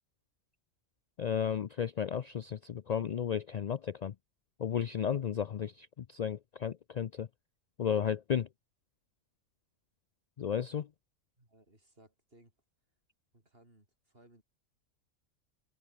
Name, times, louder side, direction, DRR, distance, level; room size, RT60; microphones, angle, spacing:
voice 1, 1.2-4.1 4.6-7.3 7.8-8.5 10.4-10.9, left 8 dB, 80° left, 0.3 m, -33 dB
voice 2, 11.4-12.5 13.3-14.4, right 1 dB, 45° right, 6.3 m, -63 dB
open air
omnidirectional pair, 1.4 m